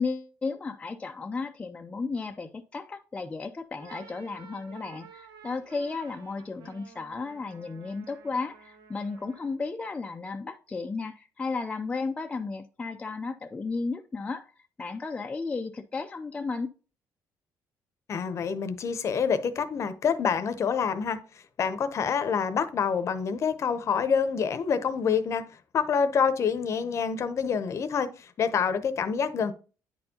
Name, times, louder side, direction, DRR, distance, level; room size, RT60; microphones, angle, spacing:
voice 1, 0.0-14.5 14.8-16.7, left 4 dB, 15° left, 0.4 m, -34 dB
sound 1, 3.6-9.7, right 6 dB, 80° right, 1.2 m, -52 dB
voice 2, 18.1-21.2 21.6-25.4 25.7-29.5, left 6 dB, 45° left, 0.7 m, -27 dB
9.4 x 4.4 x 2.8 m
cardioid pair, 130°, 7 cm